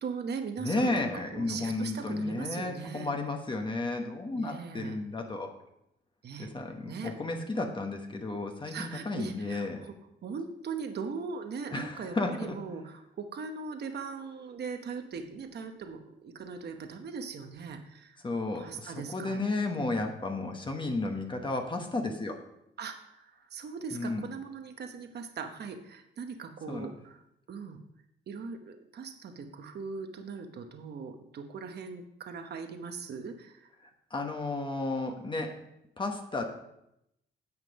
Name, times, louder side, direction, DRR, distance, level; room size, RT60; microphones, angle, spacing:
voice 1, 0.0-3.1 4.3-5.0 6.2-6.5 6.8-7.1 8.7-9.9 10.2-18.2 18.6-19.4 19.7-20.0 22.8-27.2 27.5-27.8 28.3-33.7, right 5 dB, 50° right, 6 dB, 1.0 m, -40 dB
voice 2, 0.6-5.5 6.4-9.8 11.7-12.6 18.2-22.4 23.9-24.2 26.7-26.9 33.8-35.5 36.0-36.4, left 2 dB, 25° left, 3 dB, 1.1 m, -33 dB
9.7 x 7.6 x 5.2 m, 0.82 s
cardioid pair, 130°, 21 cm